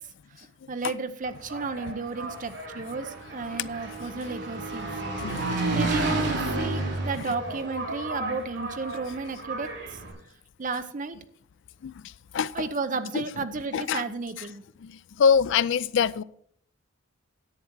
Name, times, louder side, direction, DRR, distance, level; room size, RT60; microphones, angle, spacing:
voice 1, 0.7-4.9 5.7-9.7 10.6-11.2 12.5-14.6, right 4 dB, 40° right, 0.7 m, -32 dB
Engine, 1.3-10.1, right 2 dB, 65° right, 3.5 m, -32 dB
voice 2, 12.3-12.7 13.1-13.4 13.7-14.0 14.4-14.5 14.8-14.9 15.2-16.2, left 6 dB, 60° left, 0.4 m, -25 dB
10.5 x 8.5 x 4.6 m
head